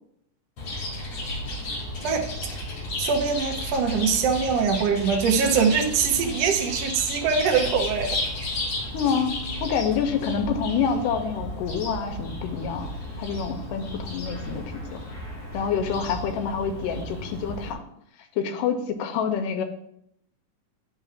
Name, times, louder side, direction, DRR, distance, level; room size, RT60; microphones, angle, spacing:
Chirp tweet, 0.6-17.7, left 1 dB, 55° left, 2.8 m, -33 dB
voice 1, 3.0-8.2, right 6 dB, 70° right, 2 dB, 1.6 m, -23 dB
voice 2, 8.9-12.9 13.2-15.0 15.5-17.8 18.4-19.6, left 6 dB, 90° left, 5 dB, 2.3 m, -27 dB
10.5 x 5.5 x 2.5 m, 0.73 s
omnidirectional pair, 3.8 m